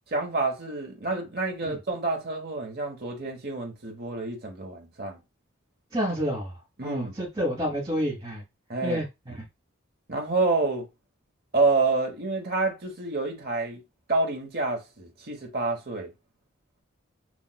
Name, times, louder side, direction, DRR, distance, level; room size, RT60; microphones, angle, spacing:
voice 1, 0.1-5.2 6.8-7.1 8.7-9.0 10.1-10.8 11.5-13.8 14.1-16.1, right 3 dB, 50° right, 1.0 m, -28 dB
voice 2, 5.9-6.5 6.8-8.4 8.8-9.3, equal, 25° right, 1.1 m, -29 dB
6.1 x 2.4 x 2.2 m
head